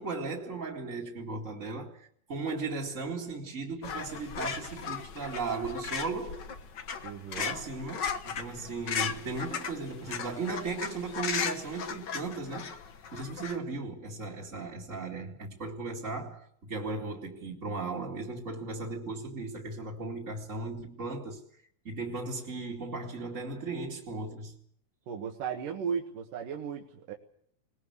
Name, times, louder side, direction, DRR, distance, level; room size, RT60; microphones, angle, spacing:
voice 1, 0.0-6.5 7.4-12.8 13.1-21.4 21.8-24.6, right 3 dB, 25° right, 2.1 m, -36 dB
sound 1, 3.8-13.6, left 7 dB, 85° left, 0.9 m, -37 dB
voice 2, 7.0-7.6 25.1-27.1, right 7 dB, 70° right, 3.1 m, -36 dB
21.5 x 20.0 x 8.2 m
omnidirectional pair, 4.1 m